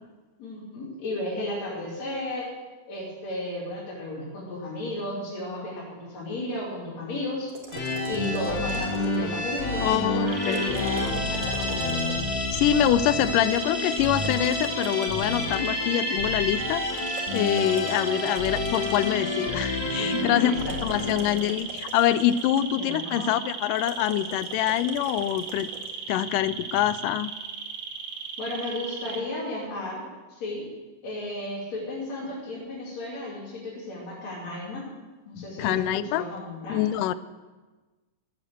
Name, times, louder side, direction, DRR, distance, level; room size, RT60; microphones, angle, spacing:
voice 1, 0.4-2.5 2.9-7.5 8.0-12.1 20.3-21.1 22.7-23.4 28.4-30.0 30.3-30.7 31.0-34.9 35.3-36.8, left 2 dB, 55° left, -7 dB, 4.0 m, -34 dB
sound 1, 7.5-9.4 10.4-12.5 13.9-15.9 17.0-19.3 20.5-22.8 23.8-26.0, right 5 dB, 80° right, 3.3 m, -43 dB
sound 2, 7.7-21.5, left 2 dB, 35° left, 2.1 m, -29 dB
voice 2, 9.8-10.6 12.5-20.5 20.8-25.7 26.1-27.3 35.4-36.2 36.7-37.1, left 11 dB, 90° left, 16 dB, 2.2 m, -25 dB
sound 3, 10.3-12.9 13.5-29.2, right 5 dB, 60° right, 2.1 m, -37 dB
13.5 x 8.4 x 7.7 m, 1.3 s
omnidirectional pair, 3.7 m